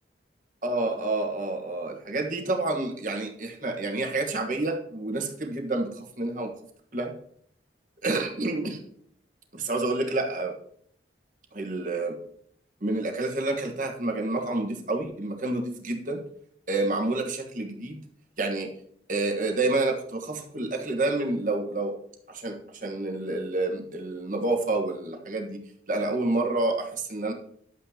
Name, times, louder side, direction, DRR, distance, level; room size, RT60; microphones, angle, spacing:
voice 1, 0.6-6.6 6.9-7.1 8.0-8.8 9.5-10.5 11.5-12.2 12.8-16.3 16.7-18.0 18.4-18.7 19.1-21.9 22.3-27.3, right 2 dB, 45° right, 3 dB, 1.3 m, -29 dB
11.0 x 8.1 x 2.9 m, 0.65 s
head